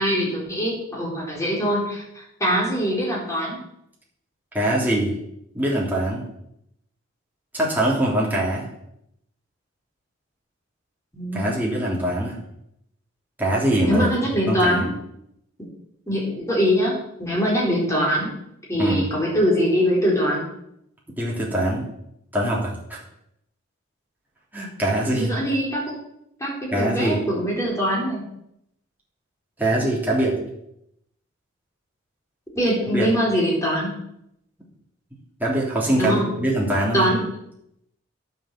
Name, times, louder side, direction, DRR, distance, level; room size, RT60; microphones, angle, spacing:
voice 1, 0.0-3.6 11.1-11.5 13.9-14.9 16.1-18.3 18.7-20.4 25.1-25.9 26.4-28.2 32.5-34.0 36.0-36.3 36.9-37.3, equal, 15° left, -4 dB, 4.2 m, -23 dB
voice 2, 4.5-5.2 5.5-6.2 7.5-8.7 11.3-12.4 13.4-14.1 14.5-14.8 18.8-19.1 21.2-21.9 22.3-23.0 24.5-25.3 26.7-27.2 29.6-30.4 32.9-33.1 35.4-37.1, right 1 dB, 10° right, -5 dB, 3.3 m, -23 dB
10.5 x 7.6 x 7.5 m, 0.78 s
head